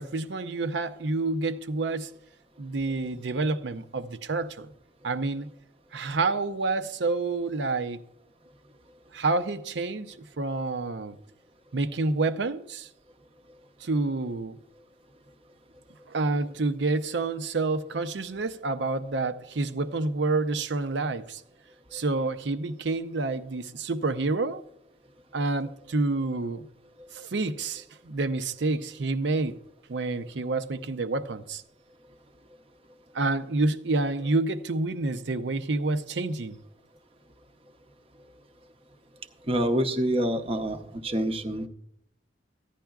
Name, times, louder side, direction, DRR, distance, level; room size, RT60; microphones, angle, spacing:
voice 1, 0.0-2.1 2.6-4.7 5.0-5.5 5.9-8.0 9.1-11.2 11.7-12.9 13.8-14.6 16.1-21.4 21.9-24.7 25.3-26.7 27.1-29.6 29.9-31.6 33.1-36.6, right 3 dB, 80° right, 0.6 m, -28 dB
voice 2, 39.5-41.7, right 1 dB, 30° right, 0.7 m, -27 dB
15.0 x 10.0 x 2.3 m
head